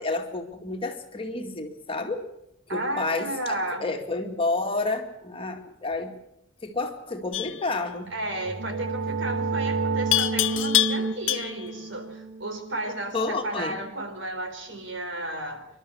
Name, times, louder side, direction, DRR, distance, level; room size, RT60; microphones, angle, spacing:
voice 1, 0.0-2.3 2.7-6.2 6.6-8.1 13.1-13.8, left 3 dB, 30° left, 4 dB, 2.2 m, -30 dB
voice 2, 2.7-3.9 8.1-15.7, right 1 dB, 65° right, 5 dB, 4.2 m, -33 dB
Livestock farm animals working animals, 7.3-7.7 10.1-11.7, left 14 dB, 75° left, 0.8 m, -25 dB
sound 1, 8.1-13.7, right 4 dB, 90° right, 1.0 m, -31 dB
27.0 x 12.5 x 8.6 m, 0.83 s
head